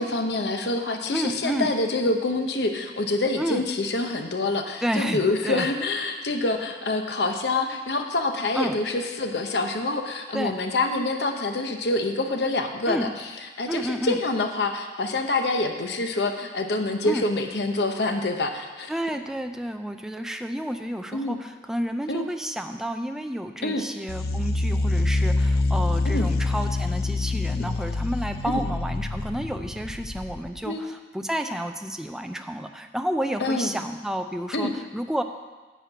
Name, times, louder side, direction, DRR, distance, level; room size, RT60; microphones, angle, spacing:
voice 1, 0.0-13.3 13.6-18.9 21.1-21.4 22.1-22.2 23.6-23.8 26.1-26.3 27.6-27.7 28.5-28.6 30.6-30.8 33.4-33.7 34.5-34.7, left 2 dB, 75° left, 5 dB, 0.9 m, -26 dB
voice 2, 1.1-1.7 3.4-3.6 4.8-5.7 8.6-8.8 10.3-10.6 12.9-13.1 13.7-14.2 17.0-17.2 18.9-35.2, equal, 5° right, 6 dB, 0.4 m, -30 dB
sound 1, 24.1-30.6, left 2 dB, 60° left, 0.5 m, -26 dB
10.0 x 4.5 x 7.8 m, 1.3 s
head